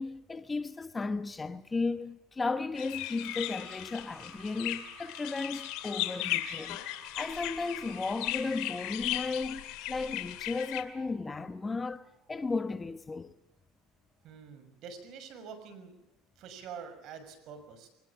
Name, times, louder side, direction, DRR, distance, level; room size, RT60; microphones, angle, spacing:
voice 1, 0.0-6.8 7.1-13.3, left 3 dB, 20° left, 1.0 m, -35 dB
sound 1, 2.7-10.8, left 15 dB, 70° left, 2.3 m, -37 dB
sound 2, 3.2-12.8 13.1-13.8 14.1-14.4, right 7 dB, 40° right, 4.5 m, -56 dB
voice 2, 14.2-16.0 16.4-17.9, right 6 dB, 55° right, 6.4 m, -46 dB
23.0 x 20.5 x 7.3 m
supercardioid pair, 105°, 0 cm